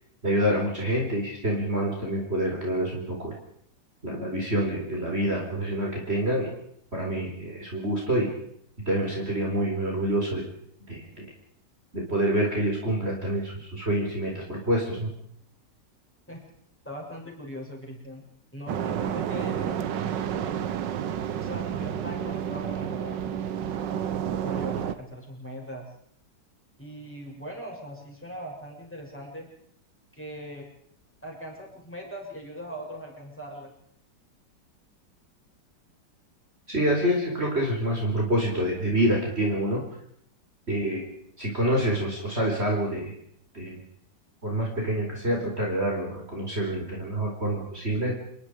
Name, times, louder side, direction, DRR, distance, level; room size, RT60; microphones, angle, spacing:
voice 1, 0.2-3.4 4.0-6.5 6.9-8.3 8.9-10.5 10.9-11.3 11.9-15.1 36.7-39.8 40.7-41.0 41.4-43.1 43.5-43.8 44.4-48.2, right 1 dB, 35° right, -1 dB, 4.7 m, -27 dB
voice 2, 16.8-18.3 18.5-19.8 20.4-20.6 21.4-23.7 24.4-25.9 26.8-29.5 30.1-30.7 31.2-33.7, equal, 5° left, -2 dB, 7.3 m, -40 dB
sound 1, 18.7-24.9, right 9 dB, 75° right, 1.7 m, -30 dB
28.0 x 22.5 x 5.0 m, 0.71 s
omnidirectional pair, 2.0 m